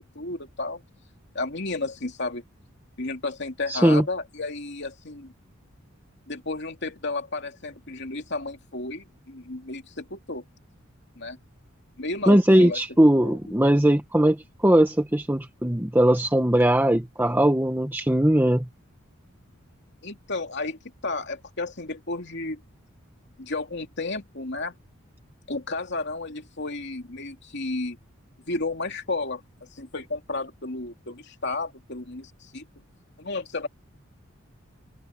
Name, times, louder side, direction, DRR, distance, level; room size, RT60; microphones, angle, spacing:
voice 1, 0.1-0.8 1.3-2.4 3.0-5.3 6.3-10.4 11.2-11.4 12.0-12.8 13.2-13.4 20.0-22.6 23.4-24.7 25.5-28.0 28.5-29.4 29.7-32.7 33.2-33.7, left 3 dB, 55° left, 2.8 m, -32 dB
voice 2, 3.7-4.0 12.3-18.7, right 1 dB, 10° right, 1.1 m, -20 dB
open air
head